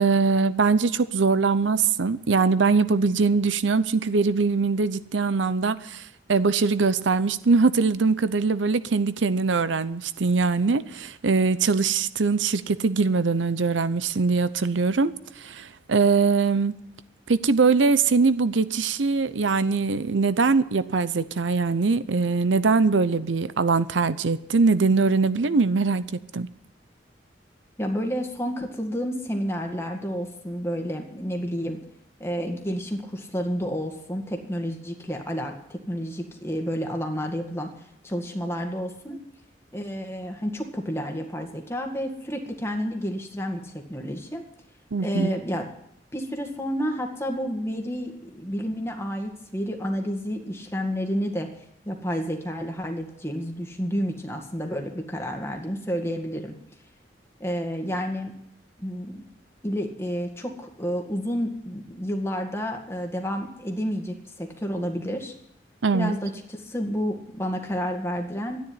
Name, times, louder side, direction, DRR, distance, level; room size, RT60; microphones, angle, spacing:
voice 1, 0.0-16.7 17.3-26.5 44.9-45.3 65.8-66.1, right 4 dB, 85° right, 0.7 m, -22 dB
voice 2, 27.8-31.8 32.2-37.7 38.0-39.2 39.7-44.4 45.0-45.7 46.1-51.5 51.9-56.6 57.4-58.3 58.8-59.2 59.6-65.3 65.9-68.6, equal, 15° left, 1.9 m, -30 dB
13.5 x 9.7 x 9.8 m
head